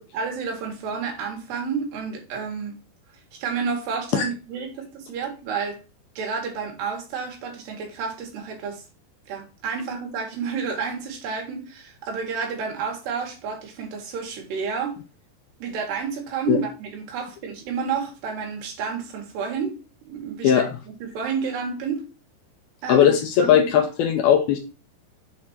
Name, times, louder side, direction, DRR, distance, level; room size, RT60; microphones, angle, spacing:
voice 1, 0.1-2.8 3.3-5.8 6.2-8.8 9.3-15.0 15.6-19.7 20.0-20.7 21.0-22.1 22.8-23.1 23.4-23.8, right 6 dB, 70° right, 3.9 m, -30 dB
voice 2, 22.9-24.6, left 9 dB, 80° left, 2.4 m, -18 dB
7.7 x 4.3 x 4.3 m
omnidirectional pair, 5.0 m